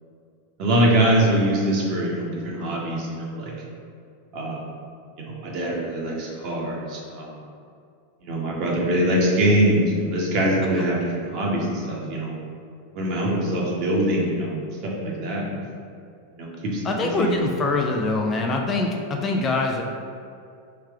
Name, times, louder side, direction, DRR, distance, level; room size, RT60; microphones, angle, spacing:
voice 1, 0.6-3.5 4.3-4.7 5.2-7.4 8.2-12.3 12.9-14.5 14.8-15.4 16.3-17.3, right 1 dB, 40° right, -3 dB, 1.1 m, -23 dB
voice 2, 16.8-19.8, left 2 dB, 25° left, 1 dB, 0.4 m, -24 dB
3.4 x 3.2 x 4.8 m, 2.4 s
figure-of-eight pair, 90°, 0 cm